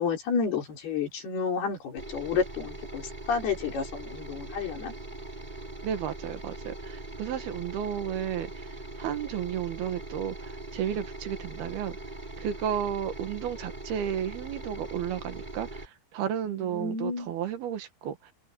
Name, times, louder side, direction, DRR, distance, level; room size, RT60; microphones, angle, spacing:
voice 1, 0.0-4.9 16.5-17.3, left 5 dB, 70° left, 6.2 m, -31 dB
sound 1, 2.0-15.9, right 2 dB, 10° right, 3.0 m, -41 dB
voice 2, 5.8-8.7 9.0-12.0 12.4-18.3, right 9 dB, 70° right, 3.3 m, -33 dB
open air
omnidirectional pair, 4.8 m